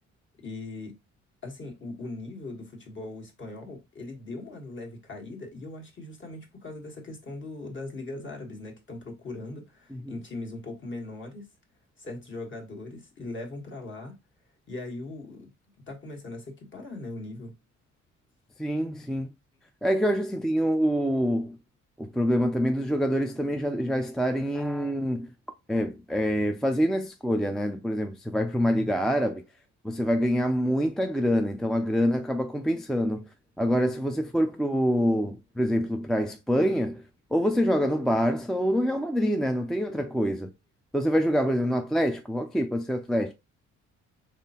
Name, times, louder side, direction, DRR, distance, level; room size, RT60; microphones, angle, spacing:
voice 1, 0.4-1.0 1.4-11.5 12.0-14.1 14.7-15.5 15.8-17.6 19.1-19.2, left 2 dB, 40° left, 1.4 m, -39 dB
voice 2, 18.6-19.3 19.8-21.6 22.0-25.3 25.7-29.4 29.8-33.2 33.6-37.0 37.3-40.5 40.9-43.3, equal, ahead, 0.3 m, -26 dB
3.6 x 3.2 x 2.8 m
cardioid pair, 90°, 30 cm